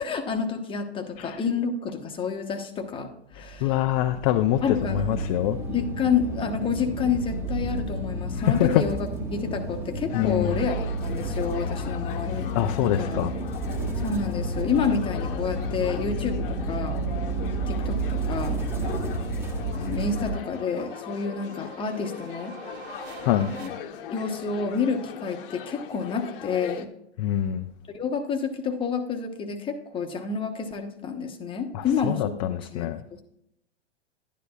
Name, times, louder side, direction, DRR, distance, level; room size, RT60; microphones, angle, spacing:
voice 1, 0.0-3.8 4.6-5.2 5.7-12.5 12.8-13.3 14.0-17.0 17.7-18.6 19.7-22.6 23.4-23.7 24.1-26.9 27.9-33.2, left 5 dB, 15° left, 4 dB, 0.9 m, -29 dB
voice 2, 3.4-5.6 8.4-8.9 10.1-10.6 12.5-13.3 23.2-23.5 27.2-27.6 31.7-33.0, left 12 dB, 30° left, 6 dB, 0.4 m, -25 dB
sound 1, 4.8-20.3, right 1 dB, 5° right, 1.2 m, -30 dB
sound 2, 10.1-26.9, left 9 dB, 50° left, 0.9 m, -40 dB
sound 3, 17.1-23.7, right 4 dB, 60° right, 1.7 m, -47 dB
11.0 x 10.0 x 2.4 m, 0.77 s
hypercardioid pair, 115°, 35 cm